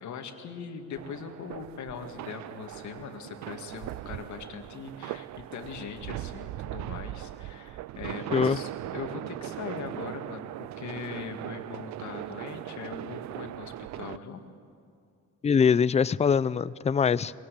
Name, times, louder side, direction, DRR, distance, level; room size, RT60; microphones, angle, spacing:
voice 1, 0.0-14.4, left 6 dB, 70° left, 2.0 m, -40 dB
sound 1, 1.0-14.2, right 15 dB, 65° right, 0.4 m, -39 dB
voice 2, 15.4-17.3, left 6 dB, 20° left, 0.4 m, -23 dB
22.0 x 18.0 x 8.3 m
cardioid pair, 90°, 30 cm